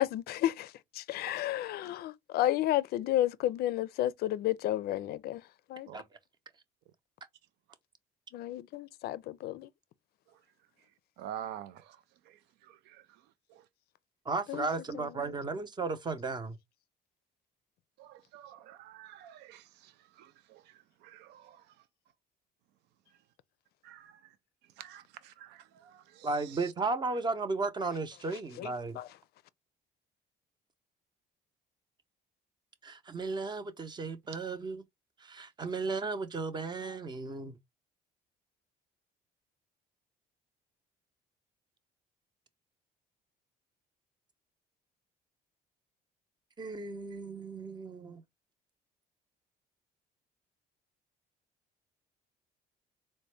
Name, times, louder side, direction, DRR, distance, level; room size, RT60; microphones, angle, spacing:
voice 1, 0.0-0.7 1.1-5.4 5.7-5.9 8.3-9.7 14.5-14.7 14.9-15.4 28.6-29.1, left 13 dB, 70° left, 0.4 m, -32 dB
voice 2, 11.2-12.0 12.3-13.1 13.5-13.6 18.0-21.7 23.8-24.3 24.8-26.7, right 10 dB, 85° right, 0.4 m, -48 dB
voice 3, 14.3-16.6 26.2-29.0 32.8-34.8 35.2-37.6 46.6-48.2, right 3 dB, 25° right, 0.7 m, -35 dB
4.0 x 2.1 x 3.2 m
cardioid pair, 110°, 17 cm